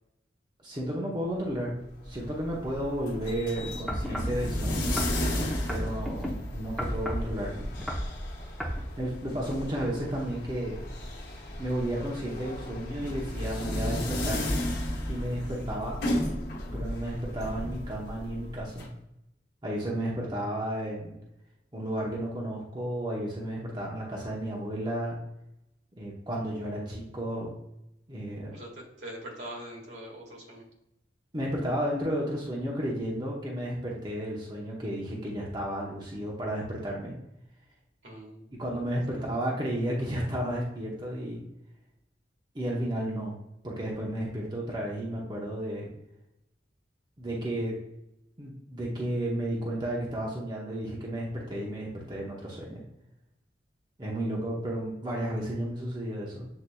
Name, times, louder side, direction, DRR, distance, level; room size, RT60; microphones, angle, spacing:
voice 1, 0.6-1.8 2.0-5.0 5.7-7.7 9.0-10.8 11.6-14.5 15.1-16.0 16.7-18.9 19.6-21.1 21.7-25.2 26.0-27.5 28.1-28.6 31.3-37.1 38.6-41.4 42.5-43.3 43.6-45.9 47.2-47.8 48.4-52.8 54.0-56.5, right 1 dB, 25° right, -3 dB, 0.8 m, -32 dB
sound 1, 1.8-18.9, left 1 dB, 65° left, 1.1 m, -34 dB
sound 2, 3.9-4.4 5.0-6.3 6.8-7.3 7.7-8.1 8.6-8.8 9.4-9.5, equal, ahead, 0.7 m, -32 dB
voice 2, 28.5-30.6 38.0-38.5 39.1-39.4, right 1 dB, 75° right, -2 dB, 1.6 m, -43 dB
7.9 x 2.8 x 2.2 m, 0.87 s
head